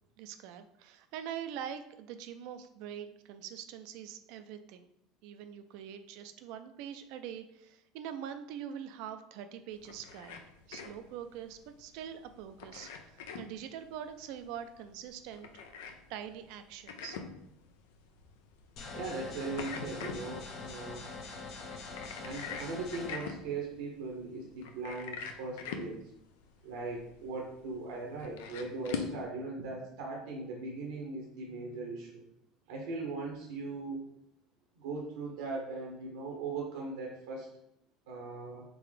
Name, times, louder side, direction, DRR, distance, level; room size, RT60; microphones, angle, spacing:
voice 1, 0.2-4.9 5.2-10.4 10.7-15.5 16.1-17.2, right 9 dB, 70° right, 9 dB, 0.4 m, -44 dB
sound 1, 9.7-29.2, left 6 dB, 80° left, 0.4 m, -45 dB
sound 2, 18.8-23.1, left 4 dB, 60° left, 0.8 m, -44 dB
voice 2, 18.9-21.0 22.2-26.1 26.6-32.2 32.7-34.0 34.7-37.5 38.1-38.6, right 3 dB, 85° right, -2 dB, 0.8 m, -39 dB
3.8 x 3.3 x 3.2 m, 0.77 s
hypercardioid pair, 85°, 0 cm